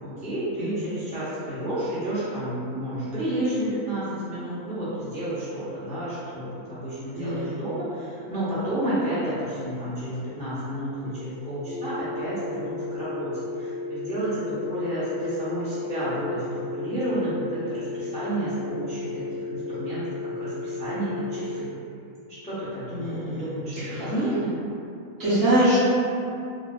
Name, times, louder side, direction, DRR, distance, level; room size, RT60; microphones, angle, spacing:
voice 1, 0.0-21.7 22.4-24.5, right 1 dB, 10° left, -12 dB, 0.3 m, -31 dB
voice 2, 7.1-7.6 22.9-24.2 25.2-25.8, right 1 dB, 60° right, -12 dB, 1.4 m, -25 dB
sound 1, 11.6-21.6, left 3 dB, 85° right, 1.1 m, -34 dB
3.1 x 2.3 x 2.4 m, 2.6 s
omnidirectional pair, 1.6 m